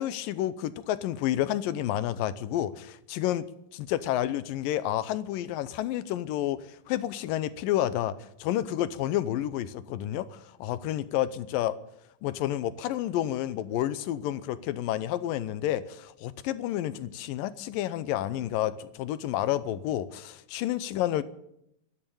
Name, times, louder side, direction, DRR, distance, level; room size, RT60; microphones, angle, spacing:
voice 1, 0.0-3.5 3.7-6.6 6.9-11.8 12.2-21.2, left 12 dB, 80° left, 14 dB, 2.4 m, -30 dB
13.0 x 12.5 x 8.8 m, 0.79 s
omnidirectional pair, 4.0 m